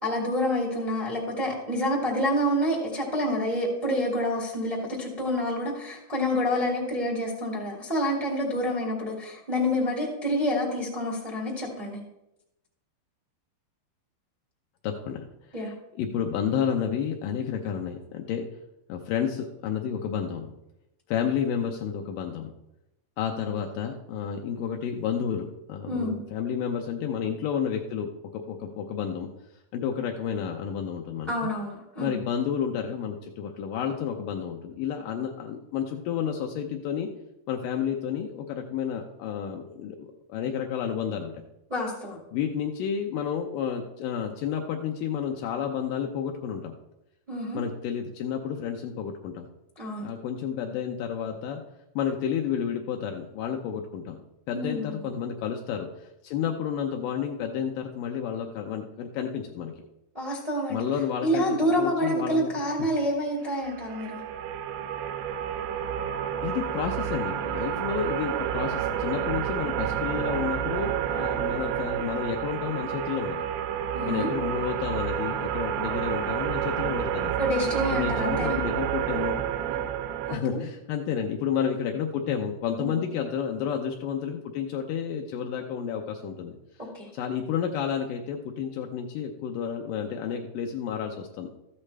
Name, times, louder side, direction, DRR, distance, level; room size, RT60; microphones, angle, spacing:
voice 1, 0.0-12.0 15.5-15.7 25.9-26.2 31.3-32.1 41.7-42.2 47.3-47.6 49.7-50.1 54.5-55.0 60.1-60.9 61.2-64.2 73.9-74.3 77.4-78.6 79.7-79.8 80.3-80.6 82.8-83.0 86.8-87.1, equal, 50° right, -3 dB, 0.5 m, -28 dB
voice 2, 14.8-15.2 15.6-15.7 16.0-18.5 18.9-20.5 21.1-22.5 23.2-29.3 29.7-31.3 32.0-37.1 37.5-41.3 42.3-46.7 47.5-49.5 50.0-51.6 52.0-54.2 54.5-55.9 56.2-59.7 60.7-62.5 66.4-73.4 74.1-77.3 77.9-79.5 80.3-86.6 87.1-91.5, left 8 dB, 85° left, 3 dB, 1.9 m, -31 dB
sound 1, 63.6-80.4, right 9 dB, 85° right, 2.6 m, -30 dB
13.5 x 8.6 x 3.3 m, 0.88 s
omnidirectional pair, 4.7 m